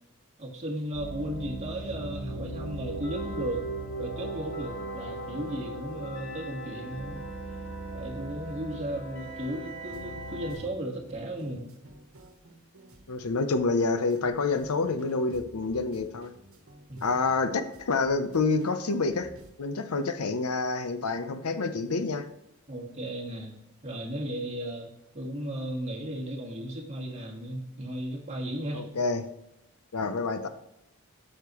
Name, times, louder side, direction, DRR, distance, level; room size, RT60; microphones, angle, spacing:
voice 1, 0.4-3.7 4.0-7.3 7.9-11.7 16.9-17.0 22.7-23.5 23.8-28.9, right 1 dB, 30° right, -2 dB, 1.7 m, -35 dB
sound 1, 0.9-10.5, right 2 dB, 55° left, 2.5 m, -38 dB
sound 2, 9.9-19.5, right 1 dB, 70° right, 1.3 m, -53 dB
voice 2, 13.1-16.3 17.0-19.3 19.6-22.3 28.7-29.3 29.9-30.5, left 3 dB, 85° left, 10 dB, 0.7 m, -28 dB
8.2 x 6.6 x 3.0 m, 0.89 s
head